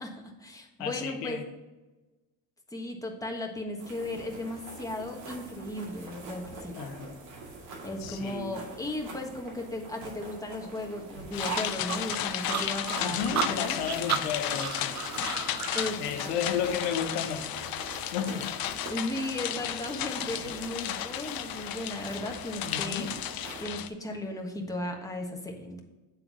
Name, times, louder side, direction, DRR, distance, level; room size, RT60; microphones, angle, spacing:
voice 1, 0.0-1.4 2.7-6.8 7.8-13.7 15.7-16.3 18.9-23.1 23.6-25.8, left 1 dB, 10° left, 1 dB, 1.3 m, -36 dB
voice 2, 0.8-1.5 6.8-7.2 8.0-8.6 13.0-15.0 16.0-17.5 18.1-18.5 22.7-23.1, left 7 dB, 90° left, 6 dB, 0.9 m, -33 dB
sound 1, 3.8-23.6, right 2 dB, 75° right, 2.4 m, -45 dB
sound 2, 11.3-23.9, left 11 dB, 50° left, 0.6 m, -34 dB
sound 3, 11.4-15.9, right 9 dB, 40° right, 0.5 m, -33 dB
8.1 x 3.8 x 6.0 m, 1.1 s
supercardioid pair, 80°, 45 cm